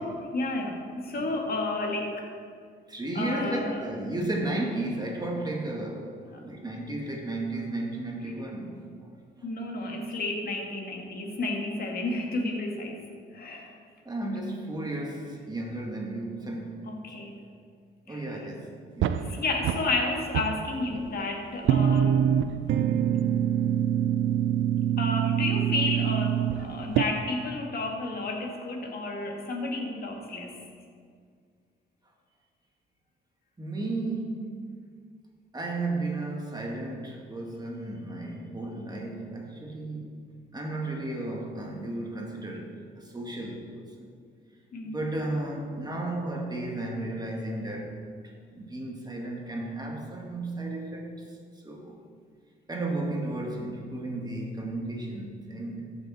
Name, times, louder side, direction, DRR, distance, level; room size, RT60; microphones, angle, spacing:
voice 1, 0.3-2.3 3.2-3.8 6.3-6.4 9.4-13.0 13.3-13.7 16.9-17.4 18.1-18.4 19.2-22.3 25.0-30.6 44.7-45.0, left 2 dB, 50° left, 1 dB, 1.9 m, -31 dB
voice 2, 2.9-6.1 6.4-9.1 14.1-16.9 18.1-19.4 33.6-34.7 35.5-40.1 40.5-44.1 44.8-48.0 48.5-51.1 51.6-52.0 52.7-55.9, right 2 dB, 20° right, 0 dB, 1.8 m, -34 dB
sound 1, 19.0-20.0 20.3-21.2 21.6-27.0, right 9 dB, 80° right, 0.5 m, -25 dB
14.5 x 6.4 x 4.3 m, 2.1 s
cardioid pair, 90°, 20 cm